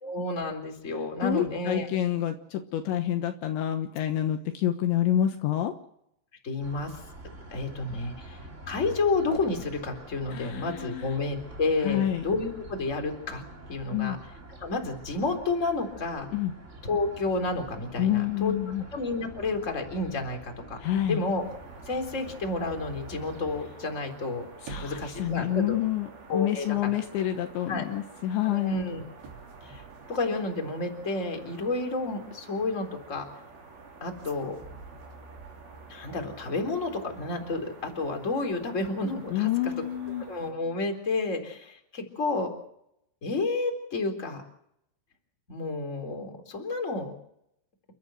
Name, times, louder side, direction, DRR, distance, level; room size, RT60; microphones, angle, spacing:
voice 1, 0.0-1.9 6.4-7.0 7.5-8.4 8.7-14.2 14.6-16.3 16.8-18.5 18.9-20.8 21.1-21.4 21.8-24.4 24.7-25.8 26.3-26.8 27.7-27.8 28.4-29.0 29.6-29.8 30.1-33.3 34.0-34.6 35.9-39.7 40.3-42.5 43.2-44.4 45.5-47.1, left 3 dB, 15° left, 5 dB, 3.3 m, -30 dB
voice 2, 1.2-5.7 10.3-11.1 11.8-12.2 13.9-14.2 16.3-16.5 18.0-18.8 20.8-21.2 24.6-28.8 39.3-40.3, left 11 dB, 75° left, 7 dB, 3.3 m, -28 dB
sound 1, 6.6-23.6, right 1 dB, 20° right, 2.8 m, -47 dB
sound 2, 21.4-40.5, right 4 dB, 50° right, 5.5 m, -49 dB
sound 3, 24.5-26.8 27.1-27.4 28.7-30.9 34.2-36.1 36.3-36.4, right 5 dB, 65° right, 5.6 m, -48 dB
29.0 x 13.5 x 8.1 m, 0.76 s
omnidirectional pair, 5.6 m